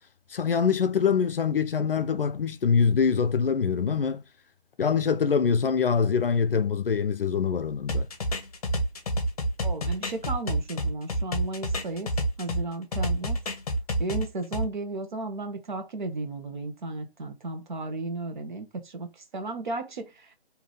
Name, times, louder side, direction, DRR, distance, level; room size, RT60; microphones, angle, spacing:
voice 1, 0.3-4.2 4.8-8.1, left 6 dB, 60° left, 0.5 m, -24 dB
sound 1, 7.9-12.6 12.9-14.6, right 1 dB, 35° left, 0.9 m, -28 dB
voice 2, 9.6-12.1 12.4-13.4 14.0-20.4, right 2 dB, 45° right, 1.1 m, -34 dB
3.4 x 2.8 x 3.8 m
figure-of-eight pair, 160°, 33 cm